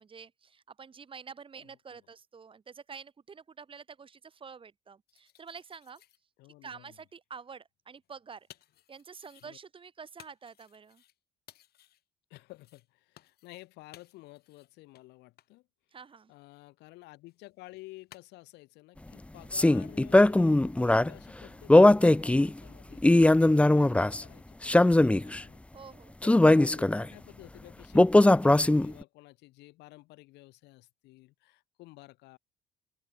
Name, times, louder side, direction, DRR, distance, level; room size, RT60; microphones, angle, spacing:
voice 1, 0.0-6.0 6.6-8.5 8.9-11.0 15.9-16.3 25.7-26.2, right 6 dB, 30° right, 3.3 m, -48 dB
sound 1, 5.1-6.2 8.0-9.5 10.2-11.2 11.5-12.0 12.4-12.9 13.2-13.7 13.9-14.7 15.0-15.1 15.4-15.5 17.3-18.2, left 13 dB, 70° left, 7.6 m, -58 dB
voice 2, 6.4-7.0 9.4-9.6 12.3-15.6 16.3-25.6 26.2-32.4, left 20 dB, 90° left, 6.1 m, -52 dB
sound 2, 19.5-21.1 21.7-22.5 23.0-24.2 24.6-25.4 26.2-27.0 27.9-29.0, left 1 dB, 5° left, 0.8 m, -20 dB
open air
cardioid pair, 110°, 17 cm